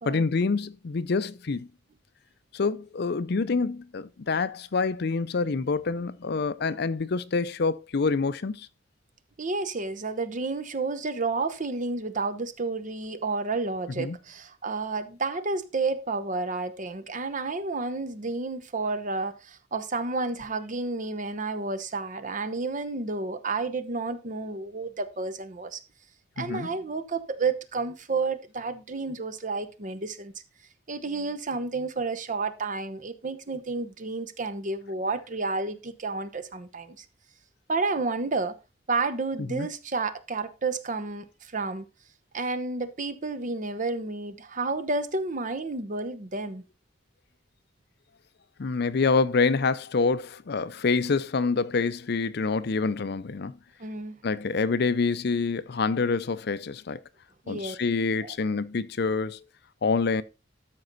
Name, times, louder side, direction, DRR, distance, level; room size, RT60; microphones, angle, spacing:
voice 1, 0.1-1.7 2.5-8.7 14.0-14.2 26.4-26.7 39.5-39.7 48.6-53.5 54.2-57.0 57.5-59.4 59.8-60.2, left 4 dB, 60° left, 0.5 m, -26 dB
voice 2, 9.4-25.8 26.4-30.3 30.9-37.0 37.7-38.5 38.9-41.9 42.3-46.6 53.8-54.2 57.4-57.8 58.2-58.3, right 3 dB, 45° right, 0.9 m, -31 dB
13.0 x 5.4 x 4.0 m
head